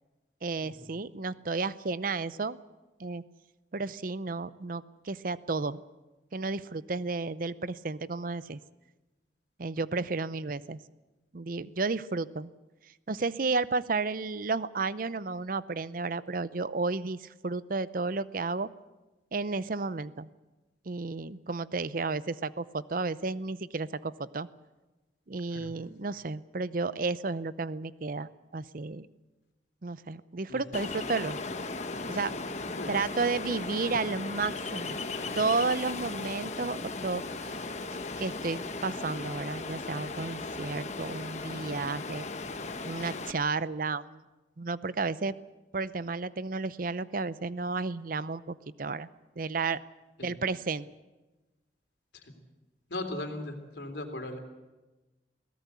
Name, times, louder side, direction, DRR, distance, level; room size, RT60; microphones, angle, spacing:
voice 1, 0.4-2.6 3.0-3.2 3.7-5.8 6.3-8.6 9.6-10.8 11.3-12.5 13.1-18.7 19.3-20.3 20.9-24.5 25.3-29.1 29.8-31.4 32.1-32.3 32.9-35.0 35.3-37.6 38.2-42.3 42.8-44.2 44.6-45.3 45.7-49.1 49.4-49.8 50.2-50.9, right 3 dB, 50° right, 16 dB, 0.6 m, -32 dB
Ocean, 30.7-43.3, left 3 dB, 40° left, 1.2 m, -37 dB
voice 2, 52.9-54.4, left 1 dB, 65° left, 5 dB, 3.3 m, -37 dB
22.5 x 17.0 x 8.2 m, 1.1 s
head